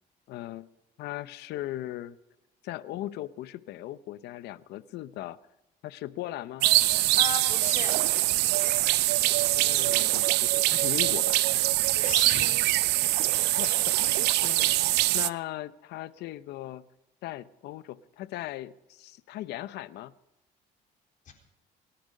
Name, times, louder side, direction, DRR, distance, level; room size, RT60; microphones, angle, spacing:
voice 1, 0.3-0.7 1.0-2.2 2.6-5.4 5.8-6.7 9.5-11.4 13.4-14.9 15.1-16.8 17.2-20.1, left 14 dB, 80° left, 16 dB, 0.7 m, -38 dB
sound 1, 6.6-15.3, right 18 dB, 80° right, 0.5 m, -24 dB
voice 2, 7.2-7.9 11.9-12.6 13.3-13.4 21.3-21.4, left 6 dB, 50° left, 2 dB, 4.2 m, -36 dB
26.0 x 10.5 x 5.4 m, 0.96 s
cardioid pair, 110°, 17 cm